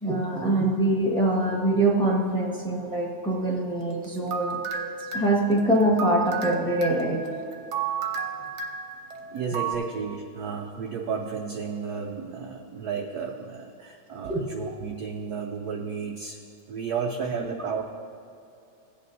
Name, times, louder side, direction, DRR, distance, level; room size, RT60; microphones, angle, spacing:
voice 1, 0.0-4.6 5.1-7.2 14.3-14.7 17.4-17.5, right 1 dB, 5° left, -2 dB, 0.9 m, -24 dB
sound 1, 3.9-9.8, right 6 dB, 60° right, 1.2 m, -33 dB
voice 2, 9.3-16.4 16.7-17.8, right 6 dB, 80° right, 2 dB, 0.8 m, -32 dB
16.5 x 8.4 x 2.6 m, 2.6 s
omnidirectional pair, 2.3 m